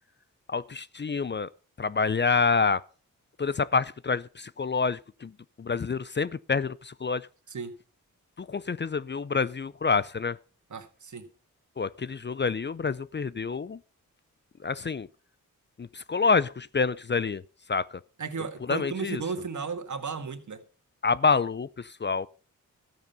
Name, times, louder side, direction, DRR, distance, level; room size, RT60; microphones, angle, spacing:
voice 1, 0.5-1.5 1.8-2.8 3.4-5.3 5.6-7.3 8.4-10.4 11.8-13.8 14.6-15.1 15.8-17.4 17.7-18.0 18.7-19.2 21.0-22.3, left 5 dB, 35° left, 0.5 m, -27 dB
voice 2, 10.7-11.3 18.2-20.6, right 5 dB, 60° right, 1.8 m, -34 dB
13.5 x 9.2 x 5.6 m
cardioid pair, 55°, 33 cm